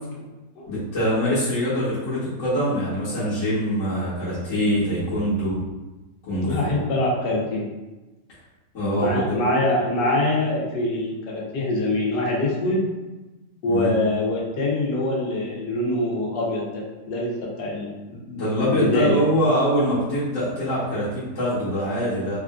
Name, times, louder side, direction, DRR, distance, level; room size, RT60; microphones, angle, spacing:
voice 1, 0.7-5.6 6.3-6.7 8.7-9.4 13.6-13.9 18.1-22.4, equal, 55° left, -12 dB, 1.4 m, -24 dB
voice 2, 6.4-7.7 9.0-12.9 13.6-17.3 17.6-17.9 18.7-19.2, left 2 dB, 80° left, -4 dB, 1.4 m, -24 dB
3.6 x 2.5 x 2.3 m, 1.1 s
omnidirectional pair, 1.8 m